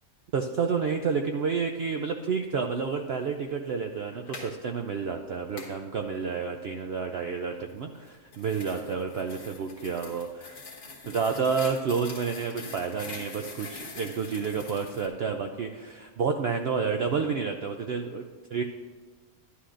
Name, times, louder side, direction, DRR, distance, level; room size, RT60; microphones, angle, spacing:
voice 1, 0.3-10.6 11.1-18.6, right 5 dB, 75° right, 4 dB, 0.5 m, -30 dB
sound 1, 4.1-4.5 5.6-5.8 7.9-15.1, left 3 dB, 80° left, 1.9 m, -44 dB
11.5 x 11.0 x 2.5 m, 1.4 s
omnidirectional pair, 1.6 m